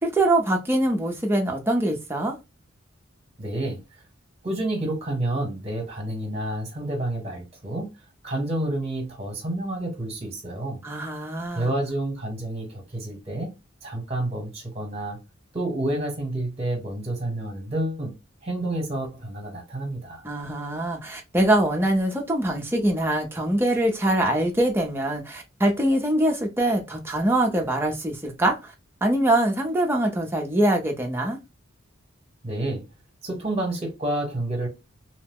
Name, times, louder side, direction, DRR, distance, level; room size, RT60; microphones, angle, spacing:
voice 1, 0.0-2.4 10.8-11.8 20.2-28.7 29.0-31.4, right 1 dB, 10° right, 0.6 m, -23 dB
voice 2, 3.4-3.8 4.4-7.9 8.2-10.8 11.5-13.5 13.8-15.2 15.5-18.1 18.4-20.2 32.4-32.8 33.2-34.7, right 1 dB, 30° right, 1.1 m, -29 dB
2.8 x 2.1 x 3.5 m
head